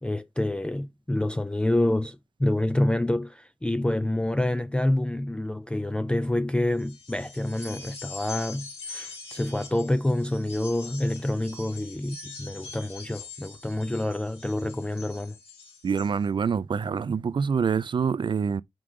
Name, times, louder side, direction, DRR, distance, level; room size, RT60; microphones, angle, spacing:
voice 1, 0.0-15.4, left 1 dB, 10° left, 0.3 m, -27 dB
sound 1, 6.7-16.1, left 4 dB, 90° left, 2.7 m, -43 dB
voice 2, 15.8-18.6, right 6 dB, 55° right, 0.4 m, -26 dB
6.1 x 4.8 x 3.7 m
wide cardioid pair, 95°, 10 cm